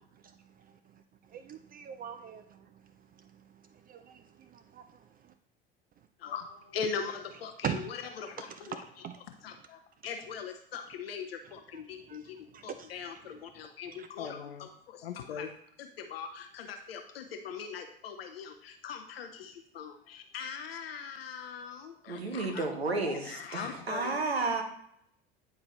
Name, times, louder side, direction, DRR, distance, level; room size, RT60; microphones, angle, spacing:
voice 1, 0.3-1.0 1.3-2.7 3.2-3.4 3.7-5.3 7.6-7.8 8.5-9.2 12.1-12.2 12.5-12.9 14.0-14.1, right 8 dB, 30° right, 0.5 m, -41 dB
voice 2, 6.2-8.8 9.4-15.5 15.8-24.2, left 6 dB, 75° left, 0.6 m, -41 dB
voice 3, 22.1-24.6, right 3 dB, 85° right, 1.0 m, -32 dB
9.3 x 4.5 x 3.1 m
figure-of-eight pair, 70°, 30 cm